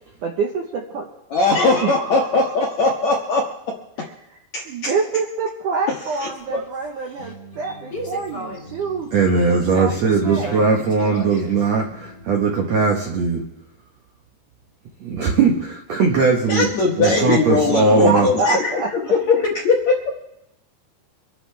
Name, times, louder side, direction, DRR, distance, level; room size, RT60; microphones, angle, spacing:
voice 1, 0.2-1.1 1.8-1.9 4.7-10.7 17.7-17.8 18.0-18.9, right 4 dB, 70° right, 2 dB, 1.9 m, -26 dB
voice 2, 1.3-3.7 4.5-4.9 5.9-6.6 16.5-20.0, left 3 dB, 70° left, -1 dB, 1.7 m, -20 dB
sound 1, 6.0-12.8, left 1 dB, 25° left, 1.9 m, -37 dB
voice 3, 9.1-13.4 15.0-16.7 17.0-18.3, right 4 dB, 90° right, 1 dB, 1.5 m, -19 dB
25.5 x 11.0 x 3.3 m, 0.87 s
omnidirectional pair, 4.9 m